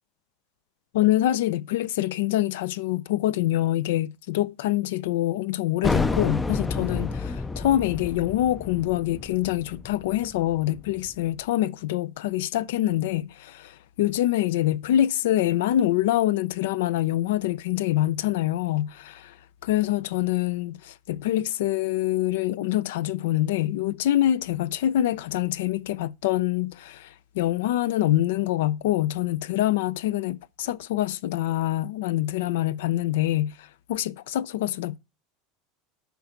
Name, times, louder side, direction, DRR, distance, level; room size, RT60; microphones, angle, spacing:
voice 1, 0.9-19.3 19.6-35.0, left 13 dB, 90° left, 0.5 m, -25 dB
sound 1, 5.8-11.1, left 3 dB, 10° left, 0.3 m, -30 dB
10.5 x 5.8 x 3.8 m
supercardioid pair, 175°, 0 cm